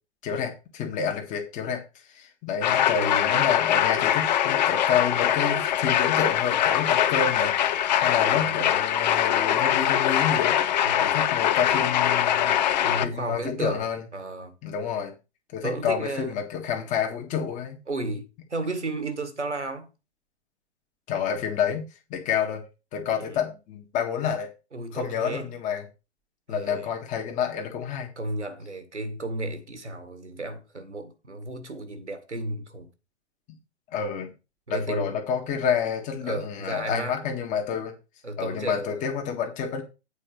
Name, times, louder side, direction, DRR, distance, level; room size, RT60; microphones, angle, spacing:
voice 1, 0.2-10.6 11.0-12.6 13.0-14.0 14.6-15.1 15.5-17.8 21.1-22.6 22.9-24.5 24.9-25.8 26.5-28.1 33.9-34.3 34.7-37.9 38.4-39.8, left 7 dB, 20° left, 1.6 m, -29 dB
sound 1, 2.6-13.0, left 11 dB, 40° left, 0.7 m, -23 dB
voice 2, 2.9-3.4 8.2-8.6 10.8-11.2 12.8-14.5 15.6-16.3 17.9-19.9 23.2-23.4 24.7-25.5 26.5-26.9 28.2-32.9 34.7-35.2 36.2-37.2 38.2-39.1, right 2 dB, 85° right, 1.8 m, -33 dB
8.5 x 4.5 x 6.4 m
figure-of-eight pair, 115°, 34 cm